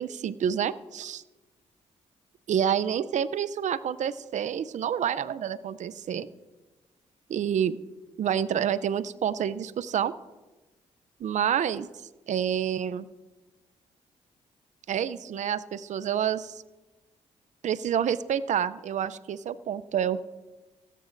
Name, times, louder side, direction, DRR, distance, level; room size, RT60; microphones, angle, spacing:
voice 1, 0.0-1.2 2.5-6.3 7.3-7.8 8.2-10.1 11.2-11.9 12.3-13.1 14.9-16.5 17.6-20.2, right 9 dB, 65° right, 16 dB, 0.5 m, -28 dB
17.0 x 15.5 x 2.6 m, 1.2 s
supercardioid pair, 60°, 13 cm